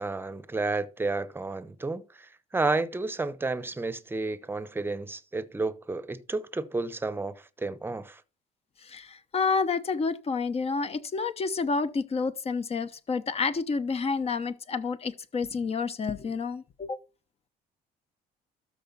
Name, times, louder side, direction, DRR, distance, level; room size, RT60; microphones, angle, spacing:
voice 1, 0.0-8.2, right 3 dB, 15° right, 0.9 m, -31 dB
voice 2, 8.8-17.0, left 4 dB, 35° left, 1.0 m, -29 dB
13.0 x 4.8 x 4.1 m
cardioid pair, 110°, 17 cm